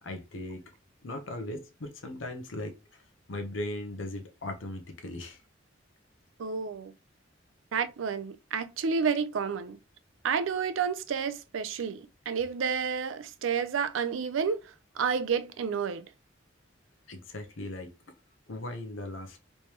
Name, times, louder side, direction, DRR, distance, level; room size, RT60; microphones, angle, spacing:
voice 1, 0.0-0.7 1.0-3.0 3.3-5.4 17.1-17.9 18.5-19.4, left 1 dB, 80° left, 0.8 m, -38 dB
voice 2, 6.4-6.9 7.7-9.8 10.2-14.6 15.0-16.0, right 6 dB, 85° right, 0.4 m, -30 dB
3.3 x 3.2 x 2.9 m
head